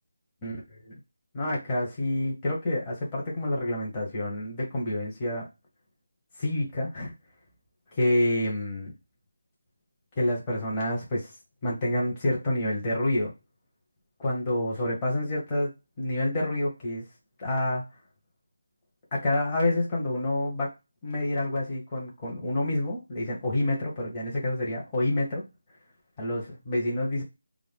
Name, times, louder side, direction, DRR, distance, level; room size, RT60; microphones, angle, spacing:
voice 1, 1.3-5.5 6.4-7.1 7.9-8.9 10.2-11.3 11.6-13.3 14.2-15.7 16.0-17.1 17.4-17.8 19.1-20.7 21.0-25.4 26.2-27.2, left 1 dB, 20° left, -4 dB, 0.9 m, -28 dB
2.5 x 2.2 x 3.4 m, 0.24 s
figure-of-eight pair, 165°, 0 cm